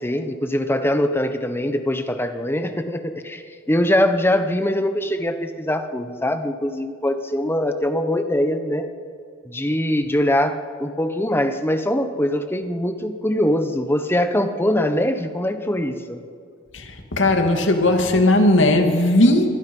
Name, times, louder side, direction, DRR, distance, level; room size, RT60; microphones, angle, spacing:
voice 1, 0.0-8.9 9.5-16.2, left 1 dB, 10° left, 8 dB, 1.2 m, -22 dB
voice 2, 16.7-19.6, left 1 dB, 75° left, 4 dB, 2.5 m, -17 dB
26.5 x 21.0 x 5.5 m, 2.3 s
head